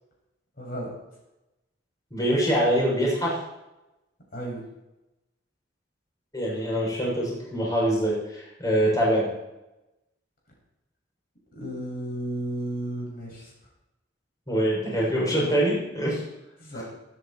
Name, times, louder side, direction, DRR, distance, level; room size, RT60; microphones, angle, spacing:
voice 1, 0.6-0.9 4.3-4.6 11.5-13.5 16.6-16.8, right 1 dB, 50° left, -2 dB, 7.3 m, -33 dB
voice 2, 2.1-3.4 6.3-9.3 14.5-16.2 16.7-16.8, equal, 20° left, -5 dB, 7.6 m, -24 dB
24.0 x 11.0 x 4.6 m, 0.96 s
head